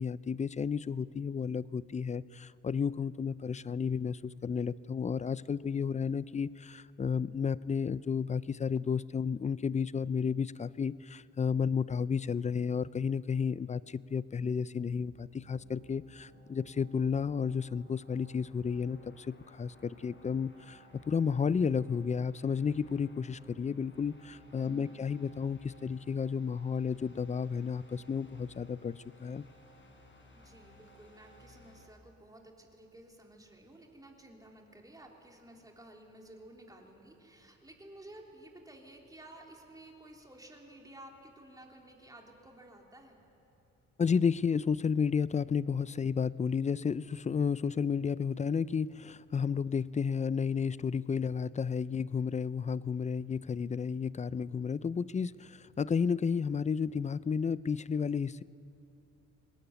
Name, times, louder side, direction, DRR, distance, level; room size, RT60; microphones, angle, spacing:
voice 1, 0.0-29.4 44.0-58.4, left 6 dB, 25° left, 19 dB, 0.4 m, -32 dB
sound 1, 14.8-31.9, left 1 dB, 40° left, 4.8 m, -59 dB
voice 2, 24.6-25.1 30.3-43.2, right 1 dB, 10° right, 0 dB, 3.5 m, -54 dB
23.0 x 19.5 x 9.3 m, 2.9 s
cardioid pair, 90°, 30 cm